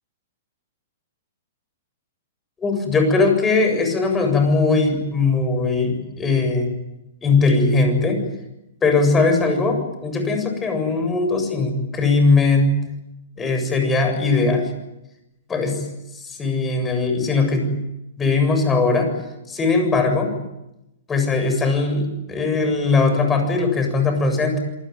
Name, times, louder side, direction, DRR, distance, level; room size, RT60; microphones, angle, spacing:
voice 1, 2.6-6.7 7.2-8.2 8.8-12.8 13.4-14.7 15.5-15.9 16.1-17.7 18.2-19.1 19.5-20.3 21.1-24.6, left 3 dB, 15° left, 6 dB, 7.6 m, -19 dB
27.5 x 20.5 x 9.6 m, 0.92 s
hypercardioid pair, 120°, 0 cm